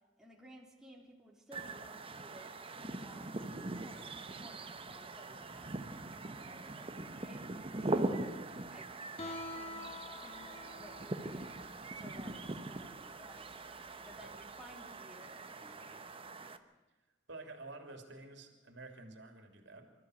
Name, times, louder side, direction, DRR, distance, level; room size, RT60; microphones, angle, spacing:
voice 1, 0.2-8.2 8.7-13.6 14.0-16.5, equal, 5° right, -2 dB, 3.5 m, -57 dB
sound 1, 1.5-16.6, right 2 dB, 30° right, 1.1 m, -42 dB
Guitar, 9.2-14.9, left 2 dB, 30° left, 2.1 m, -48 dB
voice 2, 17.3-19.9, right 2 dB, 65° right, 6 dB, 3.2 m, -50 dB
26.0 x 14.0 x 8.1 m, 1.1 s
head